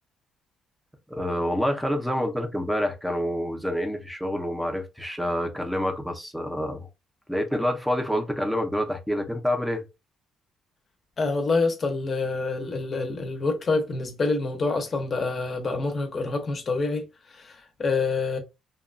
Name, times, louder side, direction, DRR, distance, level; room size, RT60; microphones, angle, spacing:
voice 1, 1.1-6.9 7.3-9.8, equal, ahead, 0.6 m, -27 dB
voice 2, 11.2-17.0 17.3-18.4, left 3 dB, 35° left, 0.7 m, -27 dB
2.9 x 2.2 x 2.5 m
cardioid pair, 130°, 0 cm